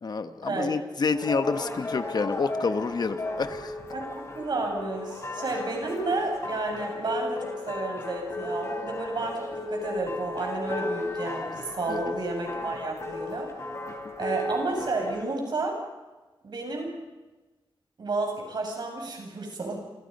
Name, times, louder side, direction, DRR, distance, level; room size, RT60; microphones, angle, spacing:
voice 1, 0.0-3.7 11.9-12.0, left 4 dB, 50° left, 9 dB, 1.2 m, -28 dB
sound 1, 1.1-15.2, left 2 dB, 30° left, 4.1 m, -35 dB
voice 2, 3.9-13.7 14.2-15.8 16.4-16.9 18.0-19.8, right 3 dB, 55° right, 2 dB, 7.2 m, -31 dB
29.0 x 28.5 x 5.4 m, 1.2 s
wide cardioid pair, 180°, 9 cm